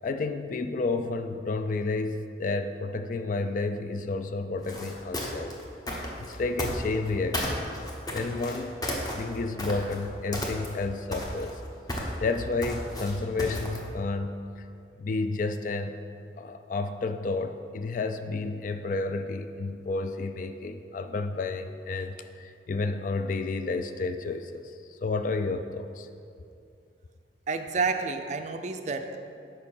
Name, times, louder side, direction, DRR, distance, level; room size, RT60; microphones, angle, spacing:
voice 1, 0.0-5.5 6.2-7.6 8.1-8.8 9.1-11.6 12.2-14.4 15.0-16.0 16.4-26.1, left 3 dB, 45° left, 9 dB, 0.3 m, -31 dB
sound 1, 4.6-7.1 7.3-10.0 10.3-10.8 11.1-13.9, left 1 dB, 20° left, 0.8 m, -33 dB
voice 2, 27.5-29.2, right 4 dB, 40° right, 7 dB, 0.4 m, -29 dB
6.6 x 5.1 x 5.5 m, 2.5 s
head